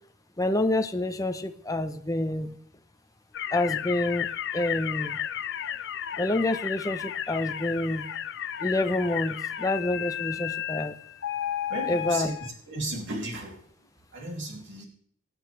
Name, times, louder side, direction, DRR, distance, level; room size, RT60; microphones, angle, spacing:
voice 1, 0.4-2.5 3.5-4.3 4.5-5.2 6.2-8.0 8.6-10.9 11.9-12.3, left 2 dB, 15° left, 7 dB, 0.8 m, -27 dB
sound 1, 3.3-12.5, left 10 dB, 60° left, 0.6 m, -33 dB
voice 2, 11.7-13.6 14.1-14.9, right 2 dB, 60° right, 0 dB, 2.8 m, -35 dB
23.0 x 9.0 x 3.4 m, 0.63 s
head